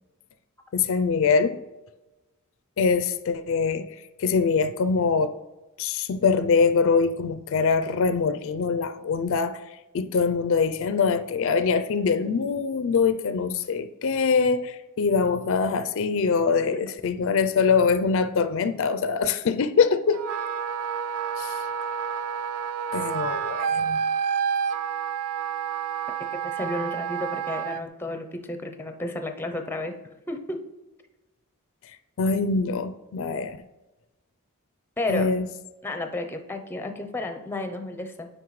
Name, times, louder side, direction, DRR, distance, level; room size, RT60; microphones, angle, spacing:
voice 1, 0.7-1.6 2.8-5.3 5.8-9.6 9.9-20.2 21.4-21.6 22.9-24.0 32.2-33.6 35.1-35.4, left 5 dB, 65° left, 0.4 m, -23 dB
Wind instrument woodwind instrument, 20.1-27.8, right 7 dB, 80° right, 0.4 m, -29 dB
voice 2, 26.4-29.9 30.3-30.6 35.0-35.3 35.8-38.3, left 2 dB, 10° left, 0.5 m, -32 dB
9.4 x 5.4 x 3.1 m
head